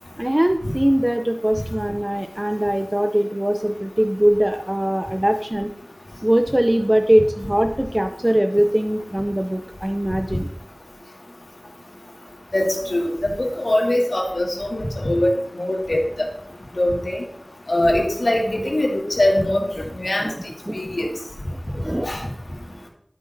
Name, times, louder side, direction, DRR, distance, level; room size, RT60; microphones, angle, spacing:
voice 1, 0.2-5.7 6.2-10.5 20.2-20.3 20.7-20.9 21.7-22.1, equal, 20° right, 6 dB, 0.5 m, -21 dB
voice 2, 12.5-16.3 16.8-17.2 17.7-20.3 20.7-21.1 22.0-22.2, left 1 dB, 80° left, -2 dB, 2.0 m, -22 dB
11.5 x 5.9 x 2.7 m, 0.67 s
wide cardioid pair, 40°, 0 cm